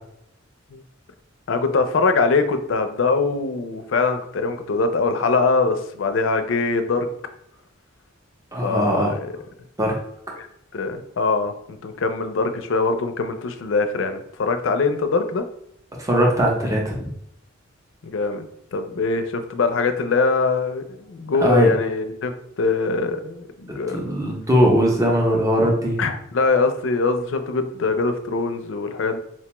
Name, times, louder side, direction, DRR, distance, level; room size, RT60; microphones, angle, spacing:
voice 1, 1.5-7.1 8.6-9.3 10.4-10.5 10.7-15.4 18.0-18.5 18.7-22.3 22.6-24.2 26.0-29.2, left 4 dB, 65° left, 8 dB, 0.4 m, -22 dB
voice 2, 8.5-9.1 9.8-10.0 16.0-17.1 21.4-21.7 23.9-26.0, equal, 15° right, -1 dB, 0.6 m, -20 dB
4.3 x 2.2 x 2.9 m, 0.74 s
head